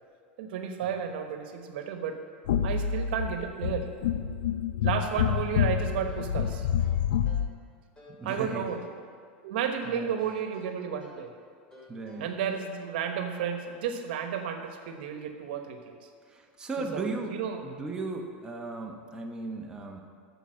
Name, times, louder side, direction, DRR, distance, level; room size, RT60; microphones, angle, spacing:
voice 1, 0.4-2.2 2.6-3.9 4.8-6.7 8.2-8.8 9.4-11.3 12.2-16.0 16.9-17.6, right 8 dB, 75° right, 6 dB, 1.1 m, -32 dB
sound 1, 2.5-7.5, left 8 dB, 85° left, 0.5 m, -28 dB
sound 2, 6.1-7.5 8.0-8.9 9.8-11.3 11.7-12.7, left 1 dB, 15° left, 2.6 m, -53 dB
voice 2, 8.1-8.7 9.8-10.2 11.9-12.3 16.3-20.0, right 3 dB, 15° right, 1 dB, 1.0 m, -36 dB
9.1 x 7.0 x 6.3 m, 2.1 s
supercardioid pair, 135°, 5 cm